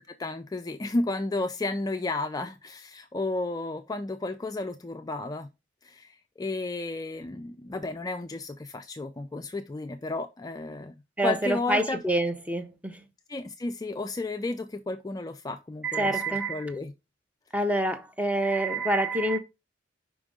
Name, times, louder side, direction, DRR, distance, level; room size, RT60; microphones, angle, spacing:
voice 1, 0.1-5.5 5.8-12.0 13.3-16.9, left 2 dB, 20° left, 0.4 m, -33 dB
voice 2, 11.2-13.0 15.8-16.7 17.5-19.4, right 1 dB, 5° right, 0.7 m, -27 dB
5.1 x 5.1 x 3.6 m
head